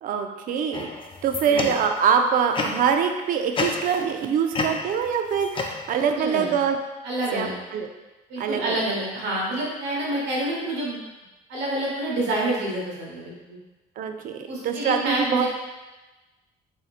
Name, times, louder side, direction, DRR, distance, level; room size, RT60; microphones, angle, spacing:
voice 1, 0.0-0.9 1.2-6.8 7.3-7.9 8.4-9.0 14.0-15.5, right 7 dB, 55° right, 5 dB, 0.4 m, -24 dB
sound 1, 0.7-2.1 2.5-3.0 3.5-4.2 4.5-6.2, left 3 dB, 30° left, 0.4 m, -30 dB
voice 2, 6.2-6.5 7.0-7.5 8.3-11.0 11.5-13.6 14.5-15.5, right 1 dB, 85° right, -4 dB, 1.3 m, -28 dB
4.3 x 3.8 x 2.4 m, 1.1 s
cardioid pair, 110°, 17 cm